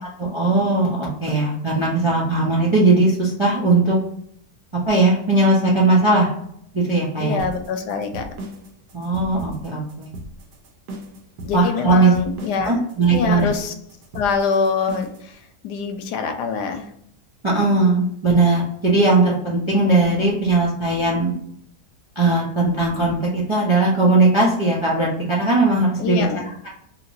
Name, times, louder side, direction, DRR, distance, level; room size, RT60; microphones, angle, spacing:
voice 1, 0.2-4.0 4.9-6.3 6.7-7.4 8.9-9.8 11.5-12.1 12.6-13.5 17.4-21.3 22.2-26.2, right 2 dB, 40° right, -5 dB, 0.4 m, -18 dB
voice 2, 7.2-8.3 11.4-12.8 13.1-13.7 14.1-16.9 26.0-26.5, left 5 dB, 90° left, 6 dB, 1.2 m, -24 dB
sound 1, 7.4-15.3, right 1 dB, 80° right, 1.3 m, -37 dB
2.9 x 2.9 x 2.6 m, 0.70 s
omnidirectional pair, 1.7 m